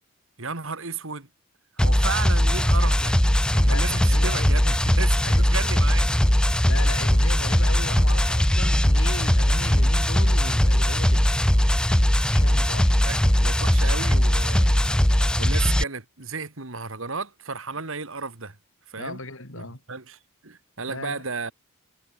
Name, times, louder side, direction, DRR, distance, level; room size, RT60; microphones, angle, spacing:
voice 1, 0.4-1.3 1.8-3.2 3.5-6.1 12.9-14.7 15.4-18.6 18.9-19.2 19.6-21.5, right 4 dB, 65° right, 2.2 m, -33 dB
sound 1, 1.8-15.8, equal, 5° left, 0.4 m, -20 dB
voice 2, 3.7-4.7 5.2-5.5 6.5-11.2 12.3-12.9 14.8-15.1 19.0-19.8 20.9-21.2, left 2 dB, 65° left, 4.7 m, -37 dB
head